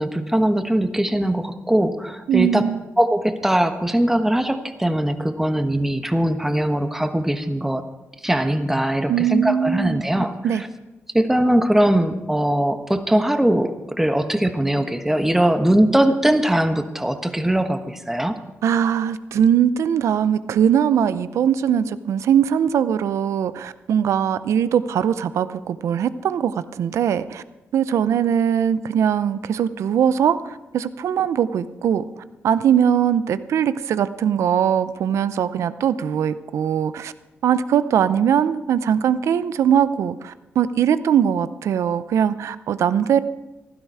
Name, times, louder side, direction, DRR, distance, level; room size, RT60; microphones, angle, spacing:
voice 1, 0.0-2.6 3.0-7.8 8.2-10.7 11.1-18.4, right 1 dB, 5° right, 7 dB, 1.2 m, -20 dB
voice 2, 2.3-2.8 9.1-10.0 10.4-10.6 18.6-27.4 27.7-37.1 37.4-43.2, right 8 dB, 85° right, 14 dB, 0.6 m, -21 dB
15.5 x 12.0 x 4.8 m, 1.1 s
cardioid pair, 85°, 5 cm